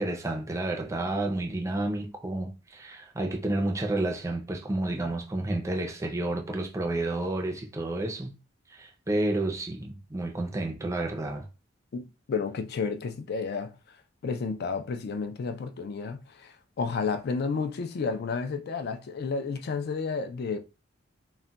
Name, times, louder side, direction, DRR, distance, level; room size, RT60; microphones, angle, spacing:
voice 1, 0.0-8.3 8.7-11.5, right 2 dB, 15° right, 0.4 m, -30 dB
voice 2, 11.9-14.0 14.2-20.6, left 5 dB, 55° left, 0.4 m, -31 dB
2.2 x 2.1 x 3.8 m
head